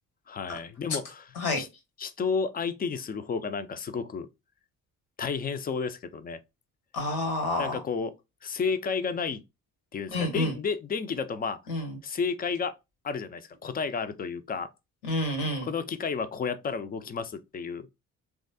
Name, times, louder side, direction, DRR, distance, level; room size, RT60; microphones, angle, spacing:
voice 1, 0.3-1.3 1.6-1.7 2.0-4.3 5.2-6.4 7.6-8.1 8.4-9.4 9.9-11.6 12.0-12.7 13.0-14.7 15.6-17.9, left 5 dB, 20° left, 0.4 m, -31 dB
voice 2, 6.9-7.8 10.1-10.6 11.7-12.0 15.0-15.7, left 2 dB, 85° left, 1.0 m, -29 dB
3.2 x 2.3 x 2.6 m
figure-of-eight pair, 40°, 42 cm